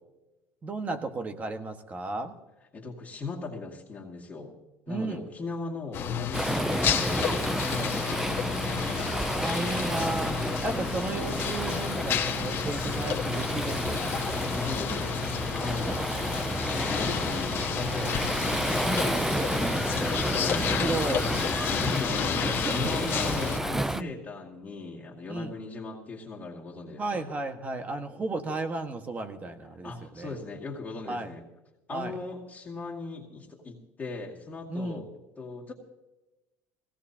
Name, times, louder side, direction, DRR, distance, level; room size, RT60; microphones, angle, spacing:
voice 1, 0.6-2.4 4.9-5.2 9.3-14.1 18.8-19.1 20.8-21.6 22.4-22.9 23.9-24.1 25.3-25.5 27.0-30.3 31.1-31.3 31.9-32.2 34.7-35.0, right 2 dB, 25° right, 7 dB, 1.5 m, -34 dB
voice 2, 2.7-4.5 4.9-9.2 14.3-15.2 15.5-15.9 16.7-20.7 21.6-27.3 29.8-31.4 31.9-35.1 35.4-35.7, left 3 dB, 30° left, -4 dB, 2.3 m, -38 dB
sound 1, 5.9-23.6, left 8 dB, 45° left, 1.5 m, -31 dB
Waves surf, 6.3-24.0, right 1 dB, 5° right, 0.5 m, -31 dB
Screaming, 19.1-23.3, left 3 dB, 10° left, 1.4 m, -43 dB
21.5 x 17.5 x 2.9 m, 1.0 s
cardioid pair, 120°, 6 cm